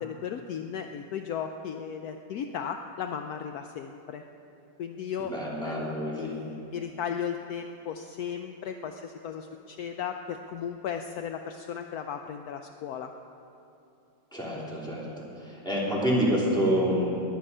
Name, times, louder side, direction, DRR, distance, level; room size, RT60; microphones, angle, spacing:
voice 1, 0.0-4.2 4.8-5.4 5.6-13.1, left 7 dB, 75° left, 6 dB, 0.8 m, -36 dB
voice 2, 5.2-6.4 14.3-17.2, equal, ahead, -6 dB, 3.0 m, -28 dB
21.0 x 8.9 x 5.4 m, 2.7 s
omnidirectional pair, 2.1 m